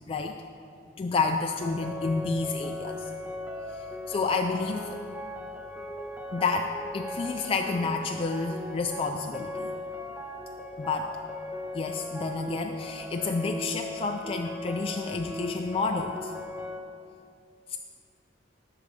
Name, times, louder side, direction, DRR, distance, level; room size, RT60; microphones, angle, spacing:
voice 1, 0.1-0.4 1.0-3.1 3.7-5.0 6.3-9.7 10.8-11.1 11.7-16.3 17.7-17.8, left 4 dB, 30° left, 3 dB, 0.3 m, -30 dB
sound 1, 1.6-16.8, left 1 dB, 10° right, 0.6 m, -38 dB
10.5 x 3.9 x 7.4 m, 2.4 s
head